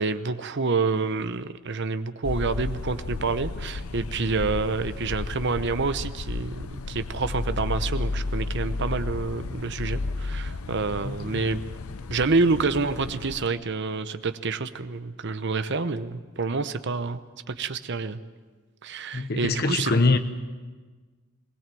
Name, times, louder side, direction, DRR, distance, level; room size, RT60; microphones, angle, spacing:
voice 1, 0.0-11.6 12.1-17.2 17.5-18.2 18.8-19.9, right 4 dB, 55° right, 11 dB, 0.9 m, -28 dB
sound 1, 2.2-13.5, left 3 dB, 85° left, 0.7 m, -33 dB
voice 2, 11.0-11.5 19.1-20.2, left 3 dB, 45° left, 9 dB, 1.1 m, -24 dB
20.0 x 19.0 x 7.7 m, 1.4 s
head